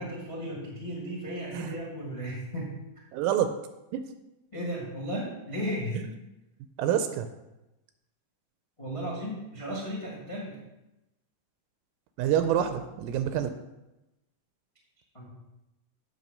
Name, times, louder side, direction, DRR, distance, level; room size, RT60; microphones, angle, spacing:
voice 1, 0.0-2.8 4.5-6.0 8.8-10.6 15.1-15.3, equal, 35° left, -4 dB, 0.5 m, -35 dB
voice 2, 3.1-3.5 3.9-4.0 6.0-6.1 6.8-7.3 12.2-13.5, right 10 dB, 85° right, 8 dB, 2.2 m, -27 dB
9.0 x 3.2 x 6.4 m, 0.96 s
omnidirectional pair, 3.9 m